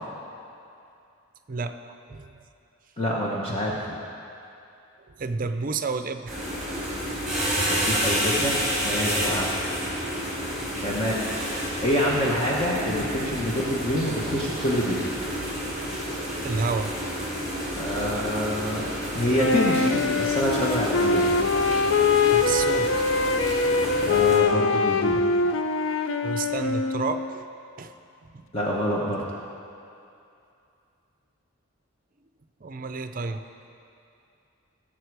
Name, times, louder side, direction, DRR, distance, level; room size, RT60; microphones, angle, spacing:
voice 1, 1.5-2.4 5.1-6.4 9.3-9.5 16.4-16.9 22.3-22.9 26.2-27.4 27.8-27.9 28.2-28.4 32.6-33.5, right 4 dB, 40° right, 8 dB, 0.5 m, -31 dB
voice 2, 3.0-3.9 7.7-9.5 10.8-11.2 11.8-15.0 17.8-18.9 19.1-21.3 24.1-25.2 28.5-29.2, equal, 25° left, -4 dB, 1.0 m, -26 dB
sound 1, 6.3-24.4, equal, 5° right, 3.2 m, -30 dB
Wind instrument woodwind instrument, 19.3-27.3, left 4 dB, 65° left, 0.5 m, -23 dB
17.5 x 7.4 x 4.7 m, 2.6 s
head